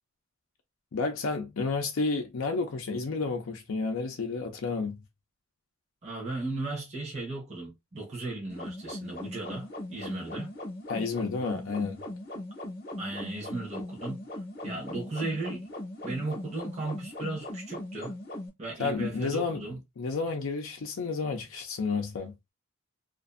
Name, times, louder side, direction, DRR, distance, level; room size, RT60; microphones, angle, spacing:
voice 1, 0.9-5.0 10.9-12.0 18.8-19.6 20.0-22.4, left 4 dB, 70° left, 0.5 m, -31 dB
voice 2, 6.0-10.5 13.0-14.2 14.6-15.7 16.0-18.2 18.6-19.8, right 2 dB, 35° right, 0.8 m, -36 dB
sound 1, 8.5-18.5, left 1 dB, 50° left, 0.9 m, -39 dB
2.5 x 2.4 x 2.5 m
head